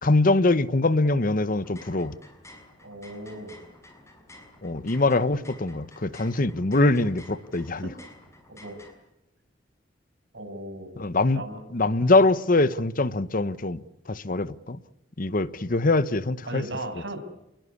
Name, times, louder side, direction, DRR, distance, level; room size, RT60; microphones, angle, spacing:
voice 1, 0.0-2.2 4.6-7.9 11.0-11.4 11.7-13.8 14.1-14.8 15.2-16.6, left 2 dB, 45° left, 1.0 m, -23 dB
sound 1, 1.6-8.9, left 1 dB, 15° left, 6.3 m, -51 dB
voice 2, 2.8-3.6 8.5-8.8 10.3-10.9 11.3-11.6 16.5-17.2, right 1 dB, 65° right, 6.9 m, -36 dB
28.0 x 21.0 x 8.6 m
head